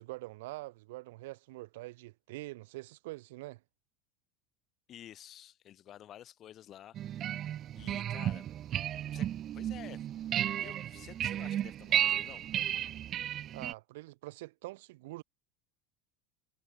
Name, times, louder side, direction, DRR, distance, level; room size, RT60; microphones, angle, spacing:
voice 1, 0.0-3.6 13.5-15.2, right 20 dB, 80° right, 3.0 m, -45 dB
voice 2, 4.9-7.2 7.7-8.4 9.1-9.3 9.5-10.0 10.5-12.5, left 11 dB, 35° left, 6.1 m, -51 dB
sound 1, 6.9-13.7, right 11 dB, 35° right, 0.5 m, -34 dB
supercardioid pair, 150°, 0 cm